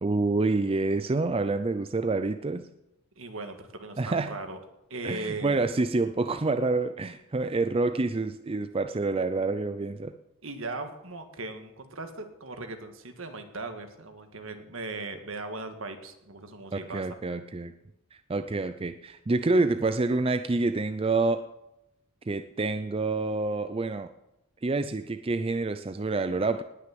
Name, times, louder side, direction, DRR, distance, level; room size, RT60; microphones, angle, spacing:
voice 1, 0.0-2.7 4.0-4.4 5.0-10.2 16.7-17.7 18.1-21.4 22.3-24.1 24.6-26.6, right 3 dB, 25° right, 9 dB, 0.5 m, -27 dB
voice 2, 3.2-4.6 4.9-5.6 10.4-17.1, right 2 dB, 65° right, 7 dB, 1.8 m, -38 dB
19.0 x 6.5 x 7.7 m, 0.89 s
head